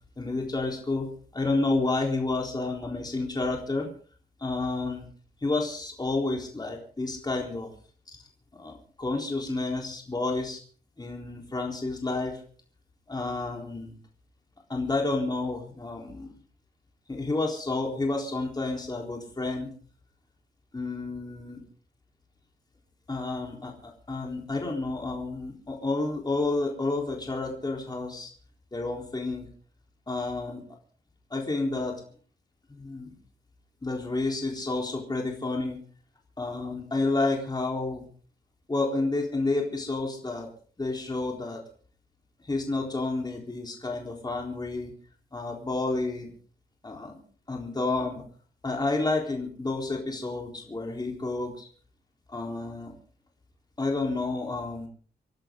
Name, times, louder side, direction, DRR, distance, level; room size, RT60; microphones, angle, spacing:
voice 1, 0.2-3.9 4.4-5.1 5.4-7.7 8.6-10.6 11.0-12.4 13.1-14.0 14.7-16.3 17.1-19.7 20.7-21.6 23.1-28.3 28.7-29.5 30.1-30.6 31.3-32.0 32.7-33.1 33.8-35.8 36.4-38.1 38.7-40.5 40.8-41.6 42.4-44.9 45.3-46.3 46.8-47.2 47.5-48.2 48.6-51.7 52.3-52.9 53.8-54.9, left 3 dB, 25° left, 0 dB, 3.9 m, -30 dB
28.5 x 12.0 x 3.8 m, 0.43 s
wide cardioid pair, 105°, 17 cm